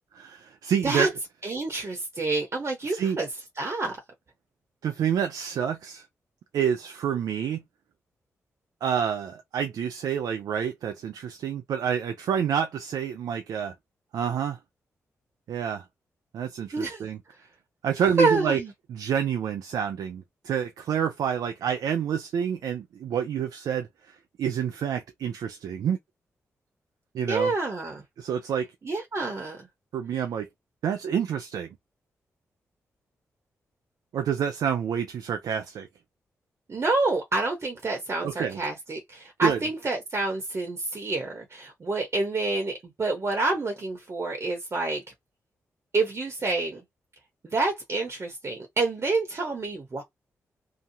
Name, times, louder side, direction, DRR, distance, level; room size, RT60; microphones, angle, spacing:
voice 1, 0.1-1.1 2.9-3.2 4.8-6.1 6.5-7.6 8.8-13.7 14.1-14.6 15.5-15.8 16.3-17.2 17.8-18.6 18.9-26.0 27.1-27.5 28.2-28.7 29.9-30.5 30.8-31.7 34.1-35.9 38.2-38.6 39.4-39.6, right 8 dB, 75° right, 0.4 m, -28 dB
voice 2, 1.4-3.3 3.6-4.0 16.7-17.0 18.2-18.7 27.3-28.0 28.8-29.7 36.7-45.0 45.9-46.8 47.4-50.0, right 3 dB, 45° right, 1.0 m, -28 dB
2.8 x 2.2 x 2.7 m
supercardioid pair, 45°, 6 cm